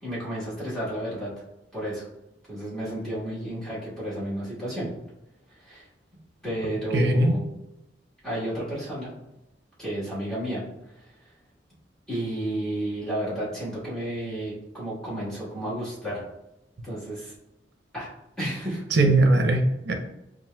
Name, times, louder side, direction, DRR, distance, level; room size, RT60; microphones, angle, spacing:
voice 1, 0.0-1.3 1.7-2.1 2.5-4.9 5.5-5.9 6.4-7.4 8.2-9.1 9.8-10.6 10.9-11.3 12.1-16.2 16.8-17.3 17.9-18.1 18.4-18.8, right 1 dB, 5° left, -10 dB, 1.5 m, -32 dB
voice 2, 6.9-7.3 18.9-19.9, right 2 dB, 65° right, 4 dB, 0.6 m, -20 dB
5.8 x 2.4 x 2.2 m, 0.89 s
head